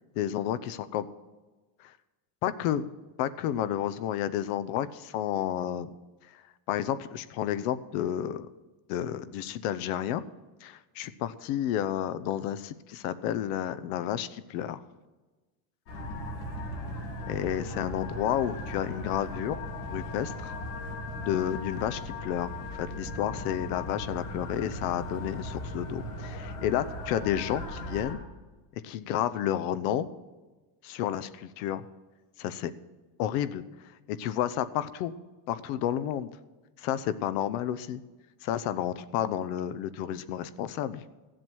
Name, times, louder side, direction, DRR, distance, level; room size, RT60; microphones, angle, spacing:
voice 1, 0.1-1.0 1.8-1.9 2.4-2.9 3.2-5.9 6.3-6.4 6.7-8.5 8.9-10.2 10.6-14.8 17.3-19.6 19.8-20.5 21.1-22.5 22.8-28.2 28.8-30.1 30.8-31.9 32.4-32.7 33.2-33.6 34.1-35.1 35.5-36.3 36.8-38.0 38.4-41.0, left 11 dB, 70° left, 15 dB, 0.9 m, -31 dB
sound 1, 15.9-28.1, left 1 dB, 90° left, 3.3 m, -38 dB
15.0 x 7.8 x 6.2 m, 1.2 s
cardioid pair, 180°, 47 cm